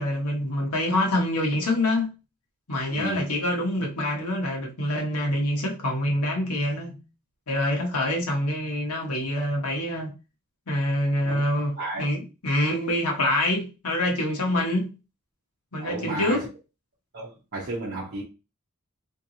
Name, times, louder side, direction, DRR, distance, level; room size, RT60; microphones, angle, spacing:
voice 1, 0.0-2.1 2.7-7.0 7.5-10.1 10.7-14.9 15.7-16.5, left 1 dB, 85° left, 1.3 m, -26 dB
voice 2, 2.9-3.3 11.2-11.4 11.8-12.1 15.8-16.5 17.1-18.2, right 2 dB, 50° right, 0.9 m, -33 dB
3.5 x 2.9 x 2.7 m
head